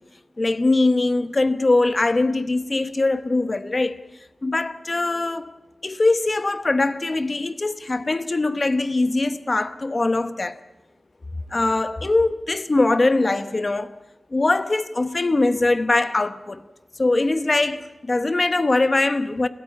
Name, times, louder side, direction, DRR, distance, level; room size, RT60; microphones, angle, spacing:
voice 1, 0.4-4.0 4.4-5.6 5.8-10.6 11.5-13.9 14.3-16.6 17.0-19.5, left 2 dB, 40° left, 1.0 m, -22 dB
29.5 x 14.5 x 8.4 m
wide cardioid pair, 85°, 0 cm